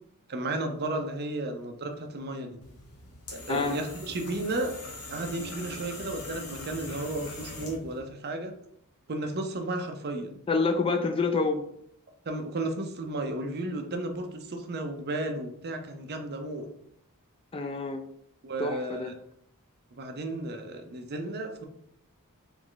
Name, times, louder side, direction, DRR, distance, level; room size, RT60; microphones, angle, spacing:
voice 1, 0.3-2.6 3.5-4.7 5.1-8.5 9.1-10.4 12.3-16.7 18.4-19.1 20.0-21.7, right 2 dB, 45° right, 5 dB, 0.6 m, -33 dB
sound 1, 2.6-8.0, left 1 dB, 70° left, 1.0 m, -42 dB
voice 2, 10.5-11.6 17.5-18.1 18.6-19.1, left 3 dB, 25° left, 6 dB, 0.3 m, -27 dB
3.5 x 3.1 x 3.8 m, 0.71 s
head